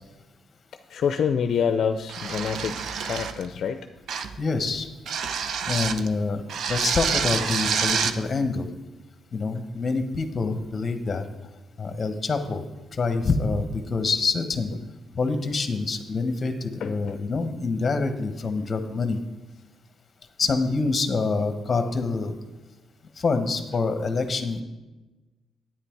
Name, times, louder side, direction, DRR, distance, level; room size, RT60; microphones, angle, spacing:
voice 1, 0.9-3.8 16.8-17.2, left 7 dB, 60° left, 8 dB, 0.5 m, -26 dB
sound 1, 2.1-3.5 4.1-4.4 5.1-6.1 6.5-8.2, right 6 dB, 65° right, 0.7 m, -27 dB
voice 2, 4.4-4.9 5.6-6.4 6.7-8.7 9.3-11.3 11.8-12.6 12.9-14.7 15.1-19.2 20.4-22.4 23.2-24.6, left 4 dB, 35° left, 8 dB, 1.3 m, -26 dB
9.7 x 9.2 x 4.7 m, 1.1 s
cardioid pair, 90°, 0 cm